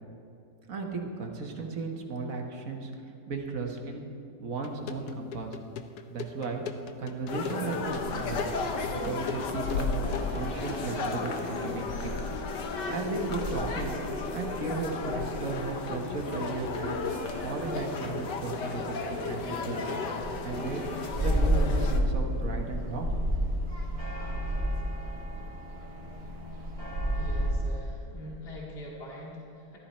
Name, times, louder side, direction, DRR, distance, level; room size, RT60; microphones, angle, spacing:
voice 1, 0.7-2.9 3.3-4.1 4.4-5.6 6.1-6.6 7.0-8.4 8.9-9.9 10.3-12.1 12.9-14.0 14.3-17.0 17.4-19.9 20.4-23.3, right 3 dB, 55° right, 2 dB, 1.7 m, -35 dB
sound 1, 4.6-10.5, left 6 dB, 70° left, 1.2 m, -41 dB
sound 2, 7.3-22.0, left 4 dB, 85° left, 1.7 m, -34 dB
sound 3, 7.8-27.5, equal, 20° right, 2.3 m, -34 dB
voice 2, 27.1-29.8, left 1 dB, 35° left, -4 dB, 2.5 m, -43 dB
14.5 x 12.5 x 4.3 m, 2.6 s
omnidirectional pair, 1.8 m